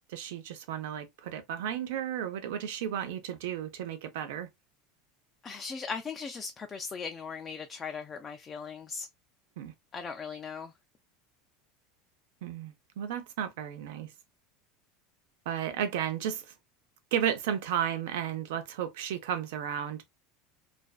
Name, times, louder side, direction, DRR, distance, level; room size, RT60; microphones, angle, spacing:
voice 1, 0.1-4.5 9.6-9.7 12.4-14.1 15.5-16.5 17.1-20.1, right 9 dB, 80° right, 0.6 m, -33 dB
voice 2, 5.4-9.1 9.9-10.7, left 5 dB, 25° left, 0.3 m, -38 dB
2.5 x 2.2 x 2.3 m
supercardioid pair, 125°, 0 cm